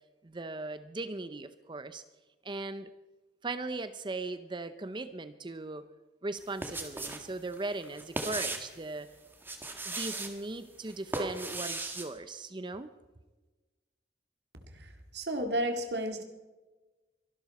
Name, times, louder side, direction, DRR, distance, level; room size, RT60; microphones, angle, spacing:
voice 1, 0.2-2.0 2.4-2.9 3.4-5.9 6.2-9.1 9.8-12.9, right 2 dB, 30° right, 12 dB, 0.7 m, -38 dB
sound 1, 6.4-7.3 7.5-8.8 9.3-10.3 10.9-12.1, right 2 dB, 10° right, 1.8 m, -37 dB
voice 2, 14.7-16.2, right 1 dB, 70° right, 5 dB, 2.1 m, -33 dB
24.5 x 12.0 x 4.2 m, 1.2 s
head